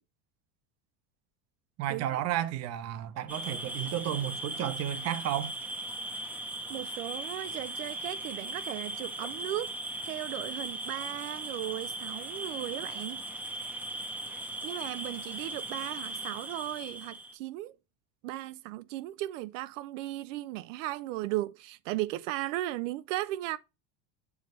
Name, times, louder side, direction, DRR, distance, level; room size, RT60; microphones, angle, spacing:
voice 1, 1.8-5.5, right 12 dB, 45° right, 0.8 m, -32 dB
sound 1, 3.3-17.4, right 1 dB, 5° right, 0.7 m, -38 dB
voice 2, 6.7-9.7 10.0-13.2 14.6-17.8 18.2-23.6, right 16 dB, 85° right, 0.5 m, -36 dB
6.6 x 4.8 x 3.0 m
supercardioid pair, 140°, 37 cm